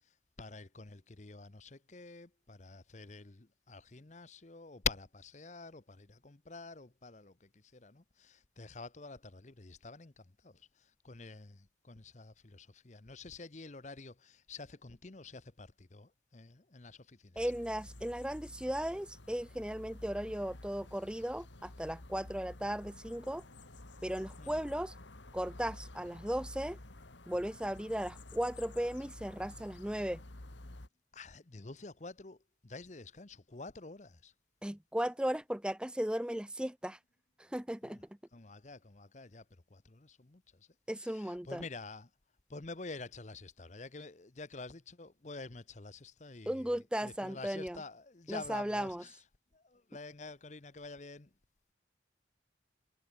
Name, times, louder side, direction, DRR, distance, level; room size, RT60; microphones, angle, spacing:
voice 1, 0.0-17.4 24.4-24.7 31.1-34.3 37.8-38.0 38.3-42.1 42.5-49.2 49.5-51.4, left 4 dB, 40° left, 0.9 m, -47 dB
sound 1, 17.4-30.9, left 1 dB, 85° left, 2.2 m, -51 dB
voice 2, 17.4-23.4 24.0-24.9 25.3-26.8 27.3-30.2 34.6-37.0 37.4-38.1 40.9-41.6 46.5-47.8 48.3-49.0, equal, 5° right, 0.5 m, -36 dB
head